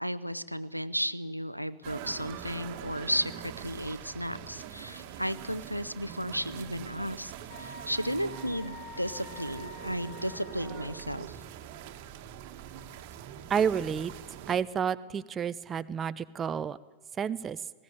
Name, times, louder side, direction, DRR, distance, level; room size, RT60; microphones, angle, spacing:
voice 1, 0.0-7.3 7.6-11.4, equal, 90° right, 14 dB, 0.7 m, -34 dB
sound 1, 1.8-14.6, right 10 dB, 45° right, 1.5 m, -43 dB
Wind instrument woodwind instrument, 7.5-11.0, left 4 dB, 55° left, 5.8 m, -47 dB
voice 2, 13.5-14.1 14.5-16.8 17.2-17.6, right 7 dB, 25° right, 15 dB, 0.6 m, -30 dB
19.5 x 16.0 x 9.7 m, 1.4 s
figure-of-eight pair, 90°, 0 cm